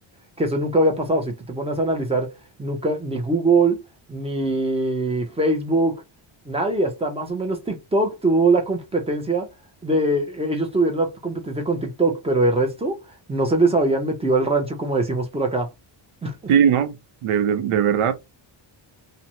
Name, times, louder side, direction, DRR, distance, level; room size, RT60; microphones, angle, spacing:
voice 1, 0.4-2.3 2.6-3.8 4.1-6.0 6.4-9.5 9.8-13.0 13.3-15.7 16.2-16.4, right 2 dB, 15° right, 0.6 m, -22 dB
voice 2, 16.5-16.9 17.2-18.1, right 8 dB, 80° right, 0.7 m, -19 dB
2.5 x 2.1 x 2.8 m
cardioid pair, 140°, 50 cm